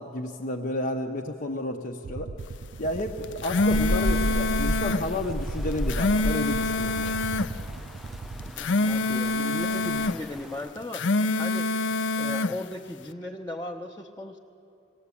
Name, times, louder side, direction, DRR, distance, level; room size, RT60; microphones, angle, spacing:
voice 1, 0.0-2.3 2.8-7.2, left 1 dB, 50° left, 0 dB, 0.9 m, -31 dB
sound 1, 2.0-8.5, right 3 dB, 65° right, 0.5 m, -39 dB
sound 2, 3.2-5.1 5.7-7.5 8.4-10.2 10.8-12.6, left 2 dB, 85° left, 0.5 m, -26 dB
Rain, 3.7-10.7, equal, ahead, 0.5 m, -32 dB
voice 2, 8.4-11.7 12.2-14.4, left 1 dB, 15° left, -2 dB, 0.8 m, -37 dB
20.5 x 18.5 x 8.5 m, 2.5 s
head